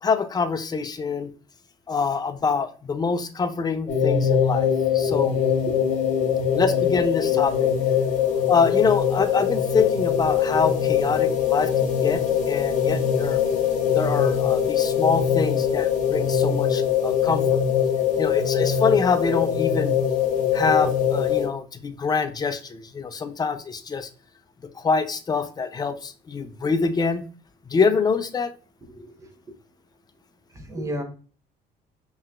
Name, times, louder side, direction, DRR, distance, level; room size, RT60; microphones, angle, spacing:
voice 1, 0.0-1.3 1.9-4.7 4.9-5.4 6.5-7.7 8.5-13.4 13.9-17.6 18.2-19.9 20.5-24.1 24.8-27.3 27.7-28.5, left 5 dB, 25° left, 10 dB, 0.5 m, -25 dB
sound 1, 3.9-21.5, left 8 dB, 50° left, 1.3 m, -22 dB
voice 2, 5.3-5.7 28.9-29.1 30.5-31.0, equal, 20° right, 5 dB, 1.0 m, -32 dB
5.5 x 2.9 x 2.4 m, 0.39 s
cardioid pair, 110°, 17 cm